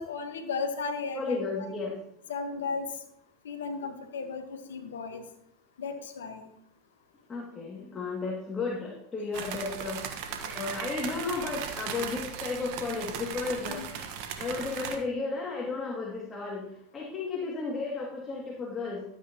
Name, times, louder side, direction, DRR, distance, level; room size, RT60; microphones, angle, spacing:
voice 1, 0.0-1.4 2.3-2.9 3.4-5.2 5.8-6.4 13.7-13.9, left 4 dB, 85° left, 7 dB, 1.4 m, -35 dB
voice 2, 1.2-1.9 7.3-14.0 14.4-16.6 16.9-19.0, left 4 dB, 25° left, -2 dB, 2.4 m, -34 dB
sound 1, 9.3-15.0, right 7 dB, 65° right, 1.4 m, -37 dB
12.5 x 9.0 x 3.0 m, 0.74 s
hypercardioid pair, 90°, 0 cm